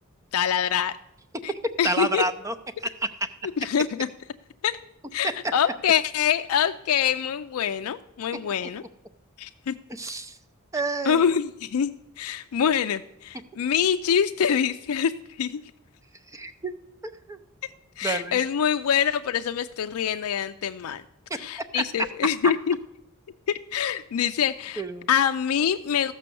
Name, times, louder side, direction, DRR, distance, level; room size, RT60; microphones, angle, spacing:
voice 1, 0.3-1.0 1.4-1.5 1.8-2.2 3.6-4.1 4.6-4.8 5.1-8.8 9.4-9.7 11.0-15.1 15.4-15.6 18.0-21.0 21.3-22.8 23.5-24.8 25.1-26.1, left 8 dB, 80° left, 8 dB, 0.4 m, -25 dB
voice 2, 1.8-2.5 3.0-3.1 9.9-10.4 10.7-11.2 16.3-16.7 17.3-17.4 18.0-18.4 21.3-21.4 21.7-21.8 22.4-22.5 24.8-25.1, right 2 dB, 15° right, 11 dB, 0.6 m, -28 dB
15.0 x 6.1 x 6.8 m, 0.87 s
head